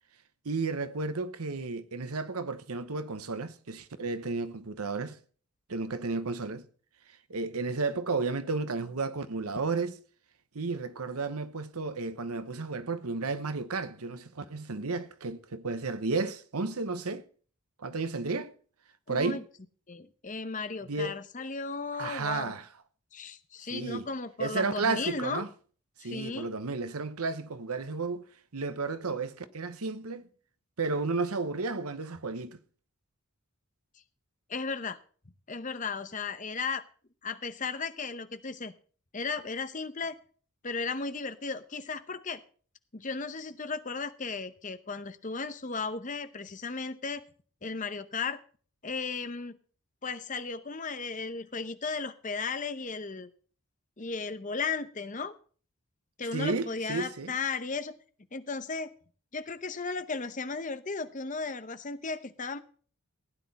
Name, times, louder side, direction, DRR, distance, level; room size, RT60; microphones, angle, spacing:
voice 1, 0.4-5.2 5.7-6.7 7.3-10.0 10.5-17.3 17.8-18.5 19.1-19.4 20.9-21.2 22.0-22.7 23.7-24.1 24.4-25.5 26.0-28.3 28.5-30.3 30.8-32.6 56.3-57.3, right 3 dB, 90° right, 1.0 m, -32 dB
voice 2, 19.1-19.4 19.9-22.5 23.1-25.4 26.0-26.5 34.5-35.0 35.5-36.8 37.2-38.7 39.1-40.2 40.6-42.4 42.9-47.2 47.6-48.4 48.8-49.6 50.0-53.3 54.0-55.4 56.2-58.0 58.3-58.9 59.3-62.6, left 4 dB, 35° left, 0.8 m, -35 dB
15.5 x 9.8 x 4.1 m
head